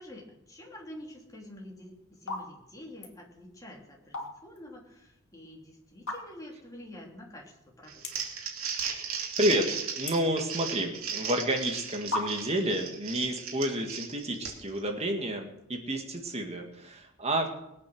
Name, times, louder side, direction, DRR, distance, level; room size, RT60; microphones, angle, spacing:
voice 1, 0.0-8.0, left 1 dB, 15° left, -1 dB, 3.0 m, -47 dB
sound 1, 1.4-1.7 2.2-2.5 2.8-3.1 3.9-4.6 5.0-5.1 5.9-6.5 7.1-7.2 7.3-7.4 8.0-8.4 8.7-9.2 9.5-10.9 11.6-11.7 12.1-12.6, left 3 dB, 60° left, 2.8 m, -36 dB
Crumpling crinkling, 7.9-14.8, right 7 dB, 70° right, 2.8 m, -36 dB
voice 2, 9.4-17.5, right 1 dB, 30° right, 3 dB, 2.0 m, -30 dB
20.0 x 8.7 x 6.3 m, 0.85 s
head